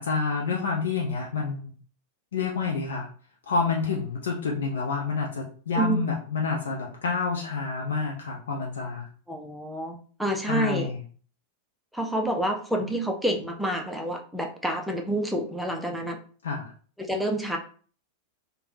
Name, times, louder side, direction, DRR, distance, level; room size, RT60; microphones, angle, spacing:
voice 1, 0.0-1.7 2.3-3.1 3.5-9.1 10.5-11.0 16.4-16.7, left 4 dB, 65° left, -1 dB, 0.5 m, -28 dB
voice 2, 9.3-10.9 11.9-16.2 17.0-17.6, right 1 dB, ahead, 2 dB, 0.5 m, -28 dB
3.2 x 2.2 x 2.7 m, 0.41 s
figure-of-eight pair, 90°, 0 cm